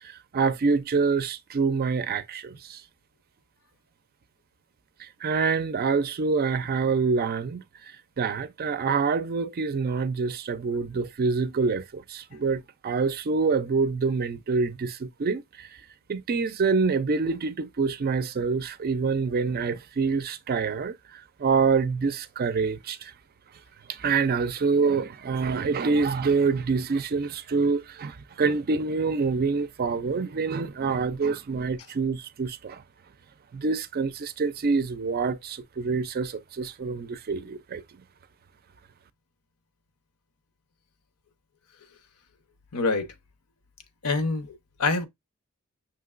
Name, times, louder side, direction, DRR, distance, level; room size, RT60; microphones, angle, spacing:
voice 1, 0.0-2.8 5.0-15.7 16.1-23.1 23.9-32.8 33.5-37.8, right 4 dB, 45° right, 0.4 m, -26 dB
voice 2, 42.7-43.1 44.0-45.1, left 3 dB, 75° left, 0.9 m, -26 dB
6.0 x 2.9 x 2.4 m
head